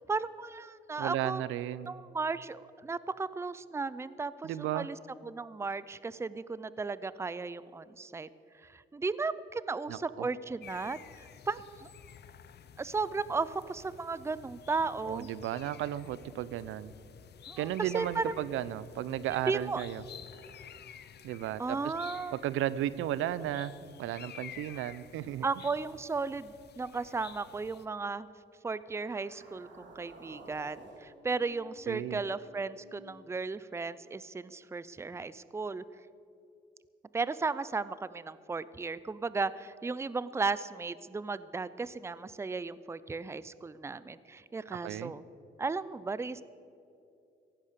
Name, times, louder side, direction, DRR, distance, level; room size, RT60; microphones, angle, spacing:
voice 1, 0.0-1.4 1.9-5.0 5.2-8.3 8.6-11.9 12.8-15.3 17.5-18.3 19.5-19.8 21.6-22.4 25.4-28.3 28.6-35.8 37.1-45.2 45.6-46.4, right 4 dB, 15° right, 17 dB, 0.5 m, -35 dB
voice 2, 1.0-1.9 4.4-4.9 9.9-10.3 15.0-16.9 17.6-20.0 21.2-21.9 22.3-23.7 24.0-25.5 31.9-32.2 44.8-45.1, right 12 dB, 85° right, 17 dB, 0.6 m, -34 dB
sound 1, 10.6-27.9, left 8 dB, 55° left, 0.8 m, -52 dB
sound 2, 28.8-33.1, right 3 dB, 65° right, 3.1 m, -54 dB
15.5 x 11.5 x 6.8 m, 2.7 s
cardioid pair, 90°, 20 cm